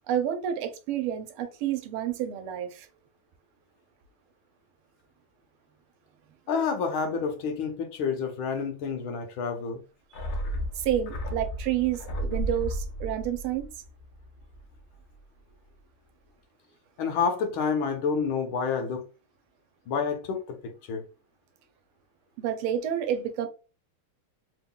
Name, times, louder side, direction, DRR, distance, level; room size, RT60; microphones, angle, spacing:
voice 1, 0.1-2.9 10.8-13.7 22.4-23.5, right 10 dB, 85° right, 1.5 m, -29 dB
voice 2, 6.5-9.8 17.0-19.1 19.9-21.0, left 5 dB, 75° left, 1.6 m, -29 dB
sound 1, 10.1-14.7 15.0-15.1, equal, 55° left, 0.9 m, -34 dB
3.9 x 3.6 x 2.3 m
omnidirectional pair, 2.3 m